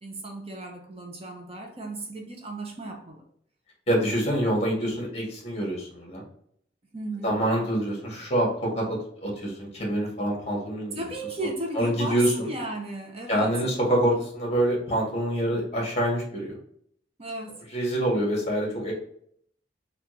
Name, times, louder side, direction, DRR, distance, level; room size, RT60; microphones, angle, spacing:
voice 1, 0.0-3.2 6.9-7.3 10.9-13.6 17.2-17.6, right 2 dB, 35° right, 2 dB, 0.7 m, -35 dB
voice 2, 3.9-6.2 7.2-8.8 9.2-11.0 11.7-12.5 13.3-16.6 17.7-18.9, right 1 dB, 35° left, -2 dB, 1.7 m, -26 dB
5.8 x 2.5 x 3.1 m, 0.67 s
head